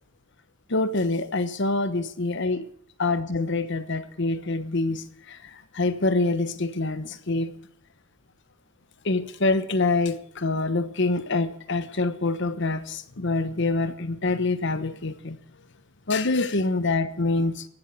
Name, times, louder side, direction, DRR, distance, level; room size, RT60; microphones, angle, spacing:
voice 1, 0.7-2.7 3.0-5.4 5.7-7.5 9.0-15.4 16.1-17.7, left 3 dB, 60° left, 1.1 m, -25 dB
15.0 x 11.0 x 8.5 m
head